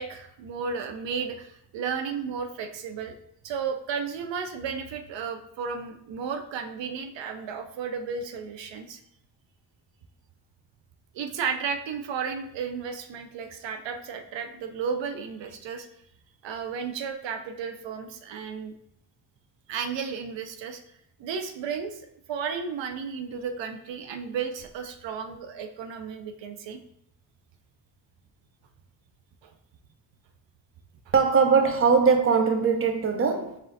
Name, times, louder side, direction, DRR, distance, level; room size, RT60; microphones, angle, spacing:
voice 1, 0.0-3.1 3.4-9.0 11.1-15.9 16.4-18.7 19.7-20.8 21.2-22.0 22.3-26.8 29.4-29.5 31.1-31.2, right 6 dB, 80° right, 0.5 m, -33 dB
voice 2, 31.1-33.6, right 5 dB, 30° right, 0.6 m, -21 dB
4.1 x 3.7 x 2.6 m
cardioid pair, 60°, 43 cm